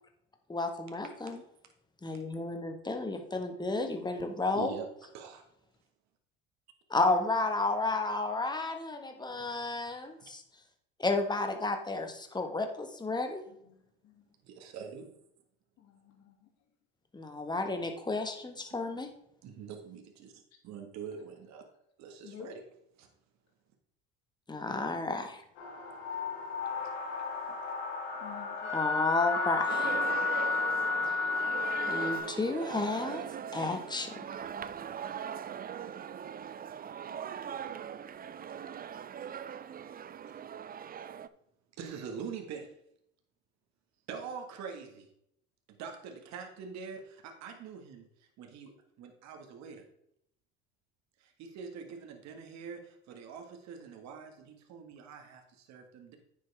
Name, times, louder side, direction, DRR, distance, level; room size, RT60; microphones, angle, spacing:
voice 1, 0.5-1.4 2.0-4.8 6.9-10.4 11.0-13.4 17.1-19.1 24.5-25.4 28.7-30.0 31.9-33.2 33.5-34.1, left 3 dB, 15° left, 5 dB, 1.7 m, -32 dB
voice 2, 4.5-4.9 5.1-5.4 9.5-10.3 14.4-15.1 19.4-21.6 22.0-22.6 23.0-23.1 26.8-26.9 27.4-27.6 40.3-40.4 41.8-42.7 44.1-45.1 45.7-48.1 48.4-48.7 49.0-49.8 51.2-56.1, right 6 dB, 60° right, 3 dB, 1.9 m, -44 dB
voice 3, 13.5-13.8 14.0-14.3 15.8-16.5 20.5-20.6 22.2-22.5 28.2-28.7 30.3-30.7, left 8 dB, 55° left, 2 dB, 2.6 m, -52 dB
sound 1, 25.6-32.2, left 4 dB, 85° left, 2.1 m, -32 dB
sound 2, 29.7-41.3, right 8 dB, 30° right, 0.5 m, -41 dB
9.4 x 7.5 x 3.5 m, 0.75 s
hypercardioid pair, 80°, 31 cm